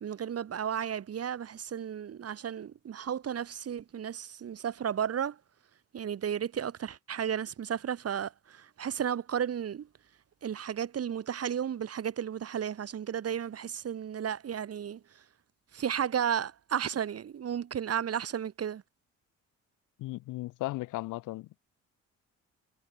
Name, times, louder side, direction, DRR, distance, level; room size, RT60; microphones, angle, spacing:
voice 1, 0.0-5.4 5.9-9.9 10.4-15.2 15.7-18.8, right 8 dB, 55° right, 2.4 m, -33 dB
voice 2, 20.0-21.5, left 18 dB, 90° left, 0.9 m, -36 dB
cardioid pair, 90°, 30 cm